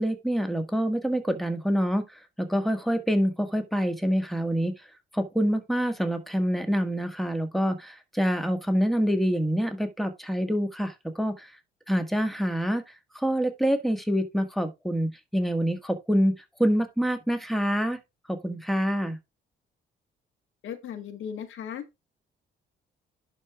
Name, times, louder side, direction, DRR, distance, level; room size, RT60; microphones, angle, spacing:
voice 1, 0.0-4.7 5.1-11.5 11.9-18.0 18.3-19.2, equal, ahead, 1.6 m, -26 dB
voice 2, 20.6-21.8, left 8 dB, 80° left, 1.6 m, -36 dB
11.0 x 4.6 x 3.5 m
cardioid pair, 90°, 20 cm